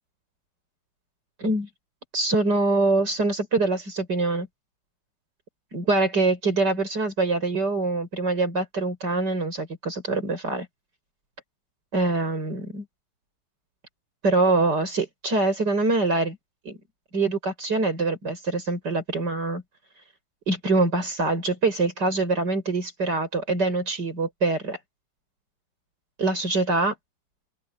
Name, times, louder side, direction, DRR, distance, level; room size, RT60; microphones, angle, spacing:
voice 1, 2.1-4.5 5.7-10.7 11.9-12.8 14.2-16.4 16.6-16.8 17.1-19.6 20.5-24.8 26.2-26.9, right 3 dB, 70° right, 6.4 m, -24 dB
open air
omnidirectional pair, 1.9 m